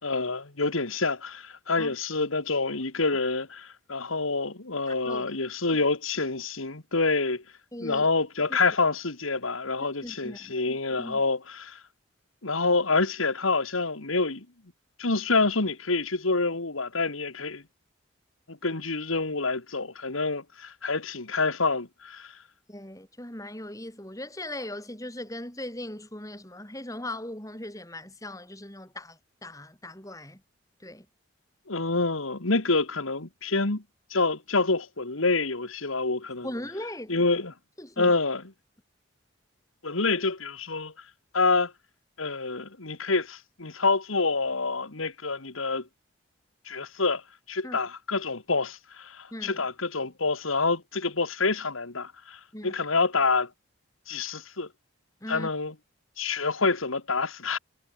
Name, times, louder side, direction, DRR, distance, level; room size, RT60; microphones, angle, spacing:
voice 1, 0.0-7.4 7.8-11.8 12.4-14.5 15.0-17.6 18.5-22.3 31.7-33.8 34.1-36.5 37.1-37.5 38.0-38.4 39.8-40.9 41.3-41.7 42.2-45.9 46.7-47.2 47.5-53.5 54.1-54.7 55.3-55.7 56.2-57.6, left 3 dB, 85° left, 2.2 m, -27 dB
voice 2, 4.9-5.3 7.7-8.1 8.5-8.6 9.8-10.5 11.0-11.2 22.7-30.4 30.8-31.1 36.4-37.2 37.8-38.2 47.6-47.8 49.3-49.6 52.5-52.7 55.2-55.5, left 1 dB, 15° left, 4.7 m, -39 dB
head